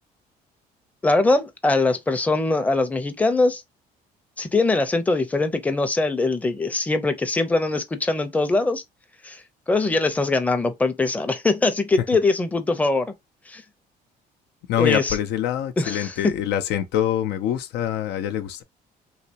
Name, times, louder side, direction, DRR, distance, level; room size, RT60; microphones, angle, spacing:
voice 1, 1.0-3.6 4.4-8.8 9.2-9.4 9.7-13.1 13.5-13.6 14.8-15.2 15.8-16.1, left 3 dB, 10° left, 0.6 m, -22 dB
voice 2, 14.7-18.6, left 11 dB, 80° left, 0.5 m, -25 dB
3.2 x 2.9 x 2.8 m
cardioid pair, 110°, 17 cm